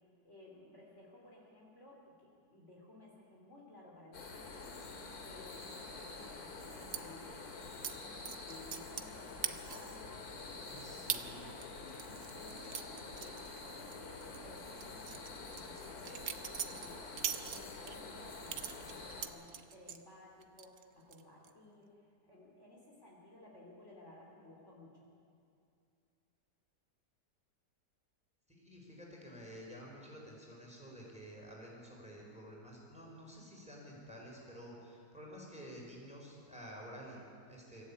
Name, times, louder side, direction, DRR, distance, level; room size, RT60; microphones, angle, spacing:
voice 1, 0.2-7.4 8.4-17.2 17.4-25.1, left 1 dB, 40° left, -3 dB, 3.8 m, -56 dB
sound 1, 4.1-19.3, left 3 dB, 60° left, 2.4 m, -47 dB
sound 2, 6.9-7.0 7.8-7.9 8.3-9.1 9.4-10.0 10.4-10.5 11.1-11.2 11.6-13.9 14.2-14.4 14.8-17.9 18.5-20.0 20.4-20.8 21.1-21.5, right 9 dB, 65° right, 1.3 m, -41 dB
voice 2, 10.7-11.5 28.5-37.8, equal, 5° right, -3 dB, 4.8 m, -51 dB
24.0 x 14.5 x 8.6 m, 2.4 s
omnidirectional pair, 1.9 m